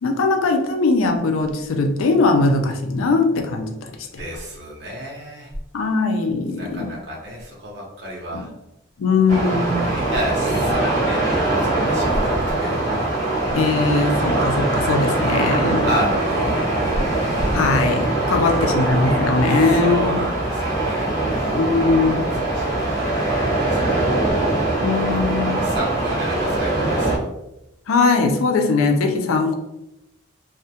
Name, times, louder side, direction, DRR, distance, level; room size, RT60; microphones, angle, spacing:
voice 1, 0.0-4.1 5.7-6.9 8.3-8.4 9.0-9.9 13.5-15.9 17.5-20.2 21.6-22.3 24.8-25.6 27.9-29.5, left 3 dB, 85° left, 4 dB, 0.4 m, -20 dB
voice 2, 4.2-5.5 6.5-8.5 9.9-12.8 15.8-17.6 18.2-18.7 19.5-21.6 22.2-24.3 25.6-27.3, equal, 55° right, -4 dB, 0.7 m, -30 dB
sound 1, 9.3-27.2, right 2 dB, 15° left, 0.6 m, -22 dB
2.2 x 2.1 x 2.7 m, 0.90 s
head